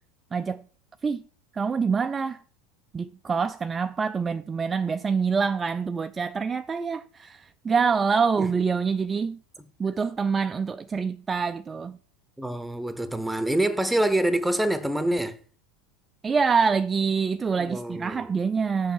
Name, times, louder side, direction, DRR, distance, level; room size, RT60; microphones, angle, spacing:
voice 1, 0.3-0.6 1.0-1.2 1.5-2.4 2.9-9.4 9.8-12.0 16.2-18.9, right 5 dB, 20° right, 0.4 m, -26 dB
voice 2, 12.4-15.4 17.6-18.3, right 1 dB, 5° right, 1.0 m, -26 dB
7.0 x 5.5 x 7.1 m
hypercardioid pair, 80°, 0 cm